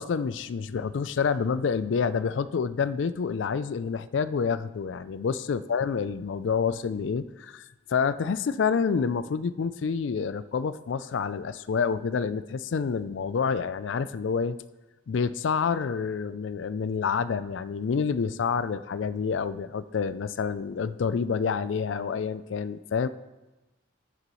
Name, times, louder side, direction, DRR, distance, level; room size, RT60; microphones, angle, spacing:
voice 1, 0.0-7.6 7.9-14.6 15.1-23.1, left 6 dB, 70° left, 15 dB, 0.4 m, -28 dB
18.0 x 6.7 x 3.1 m, 1.1 s
head